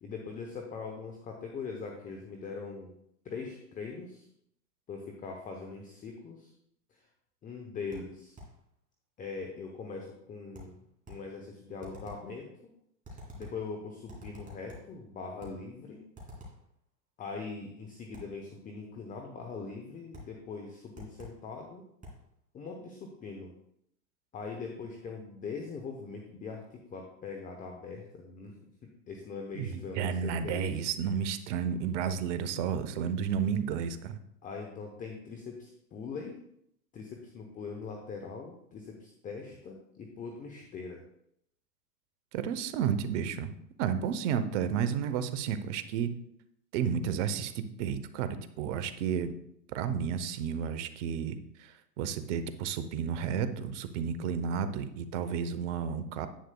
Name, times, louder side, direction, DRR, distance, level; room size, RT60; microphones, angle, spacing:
voice 1, 0.0-3.0 3.2-4.3 4.9-6.5 6.9-7.0 7.4-8.4 9.2-10.8 11.1-12.5 13.3-16.0 17.2-21.8 22.5-23.5 24.3-28.5 29.1-30.8 34.4-36.4 36.9-41.0, left 4 dB, 15° left, 2 dB, 0.8 m, -41 dB
sound 1, 7.9-8.6 10.5-11.3 11.8-12.3 13.0-13.7 14.1-15.0 15.4-15.7 16.1-16.7 18.1-18.4 20.1-20.4 20.9-21.5 22.0-22.3, left 1 dB, 15° right, 2.8 m, -48 dB
voice 2, 29.5-34.2 42.3-43.5 43.8-46.1 46.7-49.3 49.7-56.3, right 7 dB, 45° right, 11 dB, 0.9 m, -32 dB
10.0 x 8.8 x 2.3 m, 0.74 s
hypercardioid pair, 115°, 50 cm